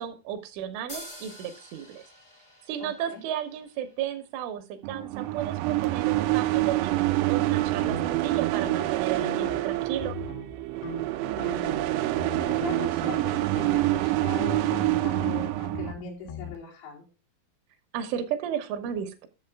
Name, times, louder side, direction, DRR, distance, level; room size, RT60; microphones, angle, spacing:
voice 1, 0.0-2.0 2.7-10.2 17.9-19.3, right 10 dB, 75° right, 8 dB, 3.3 m, -34 dB
sound 1, 0.9-4.4, left 1 dB, 20° left, 1.1 m, -47 dB
voice 2, 2.8-3.2 11.2-11.7 12.4-17.1, left 5 dB, 85° left, -3 dB, 6.4 m, -39 dB
sound 2, 4.8-15.9, right 17 dB, 90° right, 3.4 m, -26 dB
sound 3, 7.8-9.7 10.0-10.6 10.8-12.7 13.0-13.3 13.6-16.6, left 4 dB, 70° left, 2.8 m, -41 dB
12.0 x 7.4 x 3.5 m, 0.33 s
omnidirectional pair, 5.9 m